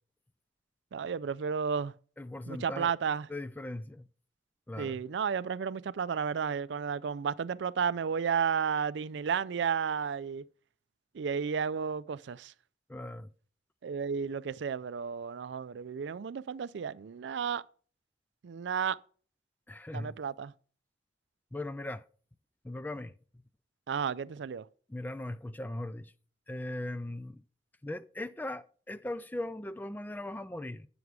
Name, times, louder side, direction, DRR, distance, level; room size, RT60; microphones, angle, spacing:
voice 1, 0.9-1.9 2.5-3.3 4.8-10.4 11.1-12.5 13.8-17.6 18.4-19.0 19.9-20.5 23.9-24.7, right 6 dB, 85° right, 0.4 m, -32 dB
voice 2, 2.2-2.9 3.3-4.1 4.7-5.0 12.9-13.3 19.7-20.2 21.5-22.0 22.6-23.1 24.9-26.1 26.5-27.4 27.8-30.9, left 1 dB, 10° left, 0.3 m, -39 dB
9.4 x 6.9 x 4.8 m
head